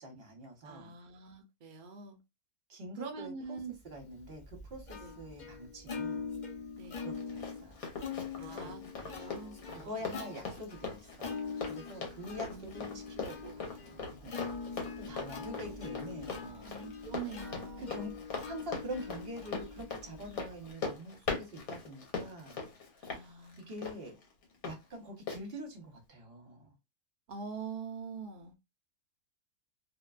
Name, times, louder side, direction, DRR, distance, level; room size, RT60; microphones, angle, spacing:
voice 1, 0.0-0.9 2.7-3.6 3.8-6.3 7.0-7.8 8.4-8.7 9.7-11.4 11.7-14.6 15.0-16.8 17.8-18.1 18.4-22.6 23.0-24.1 24.6-26.7, equal, 45° right, 1.0 m, -45 dB
voice 2, 0.6-2.2 3.0-3.8 5.0-5.2 6.8-7.0 8.4-10.3 12.4-13.0 16.4-18.1 23.1-23.8 27.3-28.6, right 5 dB, 85° right, 0.4 m, -45 dB
Plucked string instrument, 4.0-20.7, left 5 dB, 55° left, 0.5 m, -43 dB
Run, 6.9-24.8 25.3-25.4, left 4 dB, 75° left, 1.3 m, -41 dB
2.7 x 2.1 x 2.3 m
omnidirectional pair, 1.5 m